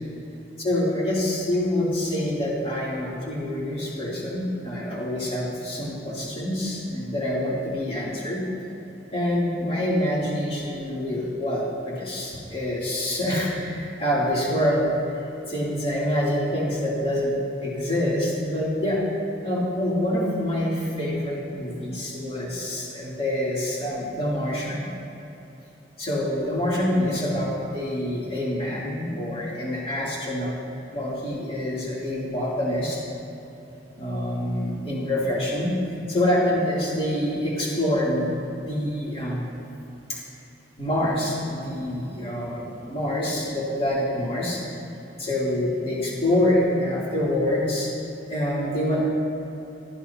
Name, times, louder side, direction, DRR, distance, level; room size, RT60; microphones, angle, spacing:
voice 1, 0.6-8.4 9.1-15.0 15.5-17.3 17.6-19.0 19.4-24.8 26.0-30.5 30.9-33.0 34.0-35.7 36.1-39.5 40.1-40.2 40.8-44.6 45.2-47.9 48.3-49.0, left 1 dB, 35° left, -7 dB, 3.2 m, -26 dB
18.0 x 12.0 x 2.9 m, 3.0 s
head